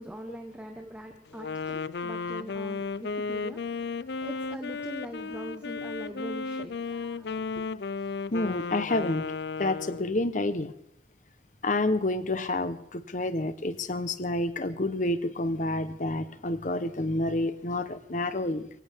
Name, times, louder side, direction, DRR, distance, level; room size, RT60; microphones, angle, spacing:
voice 1, 0.0-7.6, equal, 5° right, 3 dB, 1.1 m, -42 dB
Wind instrument woodwind instrument, 1.3-10.3, left 4 dB, 65° left, 0.5 m, -34 dB
voice 2, 8.3-9.3 9.6-10.7 11.6-18.7, left 2 dB, 45° left, 12 dB, 1.0 m, -29 dB
23.5 x 17.0 x 3.6 m, 0.74 s
head